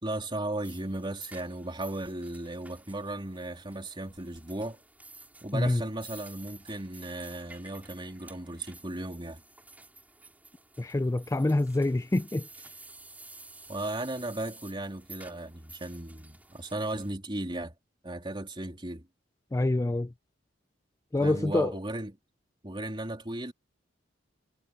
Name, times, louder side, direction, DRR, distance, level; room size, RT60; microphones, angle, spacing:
voice 1, 0.0-4.8 5.4-9.4 13.7-17.7 18.0-19.1 21.2-22.1 22.6-23.5, right 1 dB, 25° right, 3.2 m, -36 dB
sound 1, 0.6-17.1, right 2 dB, 10° right, 4.8 m, -52 dB
voice 2, 5.5-5.8 10.8-12.5 19.5-20.1 21.1-21.8, left 2 dB, 15° left, 0.4 m, -26 dB
head